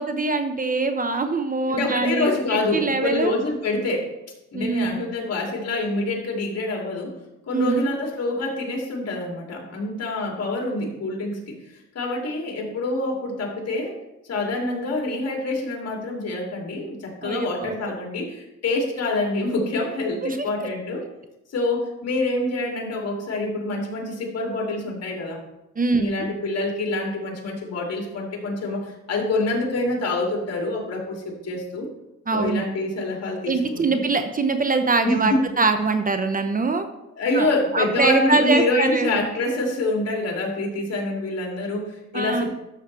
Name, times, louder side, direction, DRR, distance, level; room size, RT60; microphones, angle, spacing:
voice 1, 0.0-3.3 4.5-5.0 7.5-7.9 17.2-17.7 20.2-20.7 25.8-26.1 32.3-32.6 33.5-36.9 37.3-37.5 37.7-39.1 42.1-42.5, right 3 dB, 30° right, 8 dB, 0.8 m, -23 dB
voice 2, 1.7-4.1 4.5-7.1 7.5-11.5 11.9-13.9 14.3-21.0 21.5-25.4 25.9-31.9 32.3-34.1 35.0-35.4 37.2-42.5, left 2 dB, 55° left, 0 dB, 2.9 m, -26 dB
12.5 x 6.5 x 3.4 m, 0.92 s
cardioid pair, 90°, 30 cm